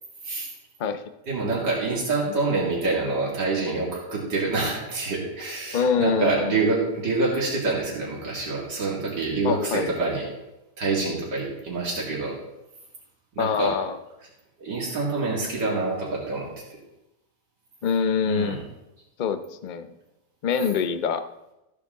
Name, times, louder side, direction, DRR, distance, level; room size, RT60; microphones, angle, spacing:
voice 1, 1.3-10.2 10.8-12.3 13.4-13.7 14.6-16.5 18.2-18.6, right 3 dB, 85° right, -4 dB, 2.9 m, -26 dB
voice 2, 5.7-6.7 9.4-9.9 13.4-14.0 17.8-18.6 19.2-19.9 20.4-21.2, left 6 dB, 80° left, 9 dB, 0.4 m, -25 dB
14.0 x 8.6 x 3.7 m, 0.92 s
omnidirectional pair, 1.8 m